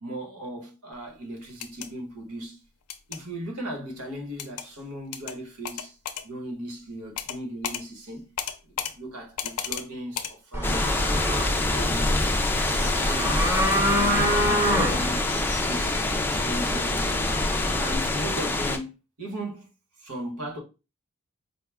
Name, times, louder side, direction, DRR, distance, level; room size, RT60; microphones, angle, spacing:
voice 1, 0.0-2.6 3.1-6.0 6.2-8.3 8.6-11.2 11.5-12.3 12.7-17.1 17.7-19.7 20.0-20.6, right 1 dB, 80° right, 1.4 m, -37 dB
Schalter switch pressing touching, 1.5-1.9 2.9-3.2 4.4-4.7 5.1-5.3 5.6-6.2 7.2-7.4 7.6-7.8 8.4-8.9 9.4-9.8 10.1-10.3, left 9 dB, 90° left, 0.5 m, -33 dB
sound 1, 10.5-18.0, equal, 10° right, 0.8 m, -27 dB
Wind leaf trees forrest, 10.6-18.8, left 2 dB, 10° left, 0.4 m, -26 dB
4.9 x 2.2 x 3.5 m
head